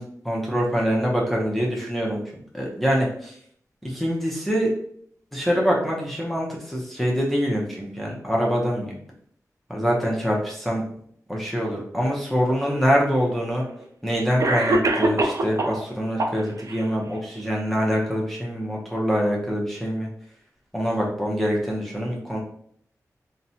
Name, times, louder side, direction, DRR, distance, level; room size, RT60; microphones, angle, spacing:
voice 1, 0.0-2.2 2.5-3.3 3.8-4.7 5.3-9.0 9.7-10.8 11.3-13.6 14.0-20.1 20.7-22.4, equal, 5° left, -3 dB, 0.6 m, -24 dB
Cough, 12.7-12.8 13.8-13.9 14.4-15.8 16.2-16.8, right 2 dB, 60° right, 0.4 m, -23 dB
4.0 x 2.1 x 2.7 m, 0.64 s
wide cardioid pair, 120°, 6 cm